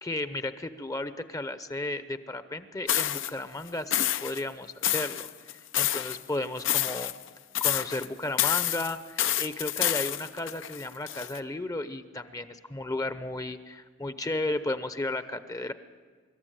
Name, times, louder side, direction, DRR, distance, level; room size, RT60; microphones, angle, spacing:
voice 1, 0.0-5.3 5.8-7.1 7.6-15.7, left 2 dB, 20° left, 12 dB, 0.8 m, -34 dB
sound 1, 2.9-3.3 3.9-4.4 4.8-6.2 6.6-7.3 7.5-8.1 8.4-11.4, left 12 dB, 75° left, 0.8 m, -28 dB
25.0 x 13.0 x 9.1 m, 1.5 s
head